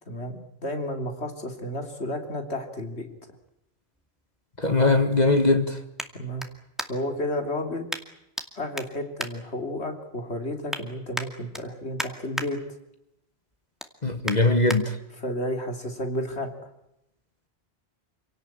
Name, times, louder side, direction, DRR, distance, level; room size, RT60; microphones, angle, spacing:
voice 1, 0.1-3.1 6.1-6.4 6.9-7.9 8.6-12.6 15.1-16.5, left 1 dB, 90° left, 3.6 m, -32 dB
sound 1, 3.1-7.2 7.9-8.5 8.7-10.1 10.4-10.8 11.1-12.5 12.9-13.2 13.5-14.8 15.4-15.5, equal, ahead, 2.3 m, -36 dB
voice 2, 4.6-5.8 14.0-14.9, left 2 dB, 40° left, 1.9 m, -21 dB
28.0 x 18.0 x 9.0 m
omnidirectional pair, 1.1 m